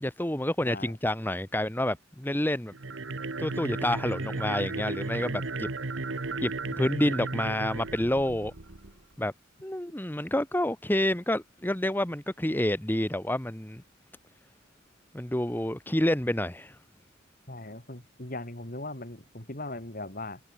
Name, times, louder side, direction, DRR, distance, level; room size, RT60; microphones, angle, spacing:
voice 1, 0.0-2.7 3.4-5.7 6.4-8.5 9.2-9.3 9.6-13.8 15.1-16.8, left 1 dB, 10° left, 1.2 m, -28 dB
sound 1, 2.7-9.0, right 3 dB, 70° right, 1.4 m, -34 dB
voice 2, 17.5-20.4, left 2 dB, 45° left, 3.6 m, -39 dB
head